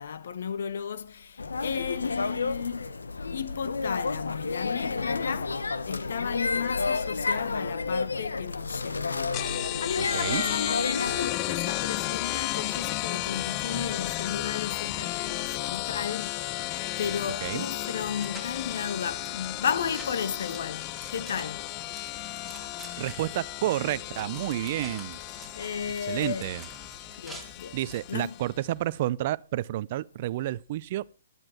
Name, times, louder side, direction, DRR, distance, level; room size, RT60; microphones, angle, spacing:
voice 1, 0.0-2.9 3.3-16.6 17.0-21.8 25.5-26.5 27.2-27.8 28.1-28.3, left 7 dB, 65° left, 1.3 m, -34 dB
sound 1, 1.4-11.3, left 4 dB, 85° left, 1.3 m, -31 dB
sound 2, 9.3-28.5, left 17 dB, 30° left, 0.6 m, -34 dB
sound 3, 13.5-28.0, right 2 dB, ahead, 3.5 m, -49 dB
voice 2, 23.0-25.2 26.0-26.7 27.7-31.0, right 14 dB, 45° right, 0.5 m, -30 dB
14.0 x 11.0 x 4.4 m
hypercardioid pair, 135°, 0 cm